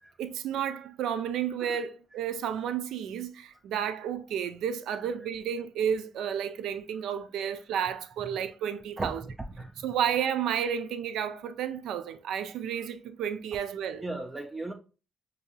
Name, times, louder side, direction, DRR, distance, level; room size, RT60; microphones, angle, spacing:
voice 1, 0.2-9.2 9.8-14.0, right 8 dB, 80° right, 0.4 m, -31 dB
voice 2, 14.0-14.7, right 2 dB, 20° right, 0.4 m, -36 dB
5.3 x 2.7 x 2.3 m
cardioid pair, 90°, 0 cm